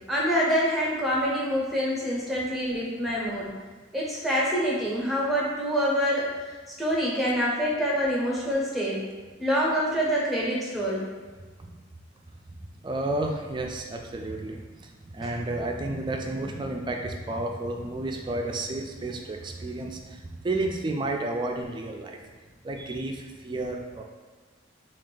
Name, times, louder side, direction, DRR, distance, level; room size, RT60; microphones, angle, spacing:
voice 1, 0.1-3.5 3.9-6.3 6.8-9.0 9.4-11.1 15.2-15.3, equal, ahead, -5 dB, 0.7 m, -26 dB
voice 2, 12.8-22.2 22.6-24.0, right 2 dB, 25° right, 2 dB, 0.3 m, -31 dB
3.5 x 2.4 x 3.7 m, 1.4 s
head